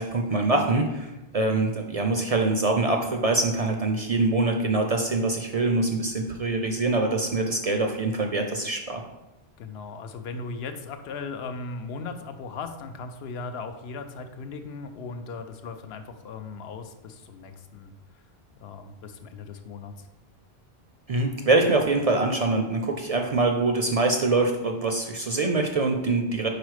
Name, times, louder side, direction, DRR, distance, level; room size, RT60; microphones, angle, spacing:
voice 1, 0.0-9.0 21.1-26.5, right 2 dB, 50° right, 4 dB, 0.5 m, -24 dB
voice 2, 9.6-17.9 18.6-20.1, left 4 dB, 85° left, 7 dB, 0.8 m, -37 dB
4.9 x 4.0 x 4.8 m, 0.99 s
omnidirectional pair, 1.0 m